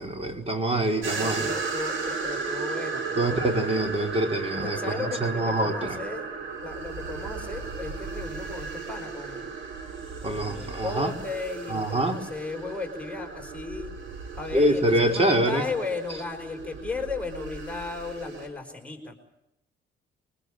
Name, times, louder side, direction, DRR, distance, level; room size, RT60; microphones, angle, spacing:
voice 1, 0.0-1.5 3.2-6.0 10.2-11.1 11.7-12.2 14.5-15.6, right 1 dB, 30° right, 4 dB, 4.6 m, -25 dB
sound 1, 1.0-18.5, right 4 dB, 75° right, 5.0 m, -35 dB
voice 2, 1.1-3.5 4.6-6.3 6.6-9.5 10.2-13.9 14.4-19.1, left 3 dB, 5° left, 2 dB, 5.0 m, -35 dB
23.5 x 20.5 x 8.8 m, 0.85 s
cardioid pair, 90°, 20 cm